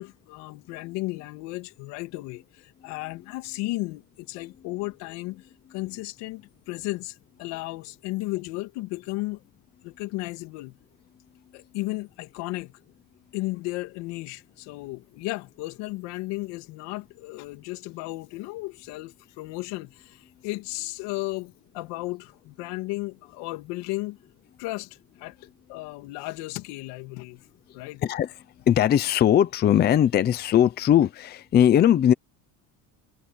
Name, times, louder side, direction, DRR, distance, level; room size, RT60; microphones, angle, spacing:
voice 1, 0.0-9.4 9.8-10.8 11.5-12.7 13.3-24.2 24.6-25.4 25.7-27.4 27.7-28.0, left 21 dB, 85° left, 2.8 m, -34 dB
voice 2, 28.0-28.3 28.7-32.1, left 10 dB, 25° left, 0.6 m, -20 dB
cardioid pair, 180°, 41 cm